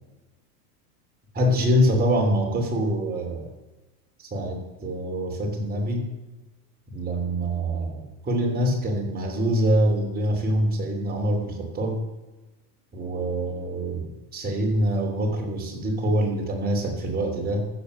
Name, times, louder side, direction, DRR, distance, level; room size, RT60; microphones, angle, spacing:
voice 1, 1.3-3.5 4.2-6.1 6.9-12.1 12.9-17.7, equal, 20° right, 0 dB, 3.2 m, -25 dB
15.0 x 7.3 x 6.8 m, 1.1 s
supercardioid pair, 145°, 46 cm